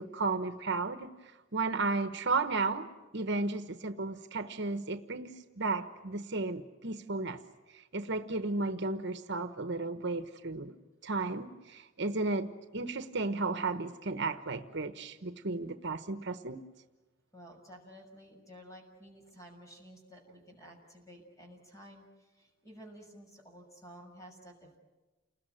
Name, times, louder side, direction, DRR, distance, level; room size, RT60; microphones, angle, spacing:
voice 1, 0.0-7.4 7.7-10.7 11.0-16.7, right 3 dB, 60° right, 1.2 m, -34 dB
voice 2, 17.3-24.8, equal, 15° left, 6.4 m, -53 dB
29.5 x 20.5 x 9.1 m
head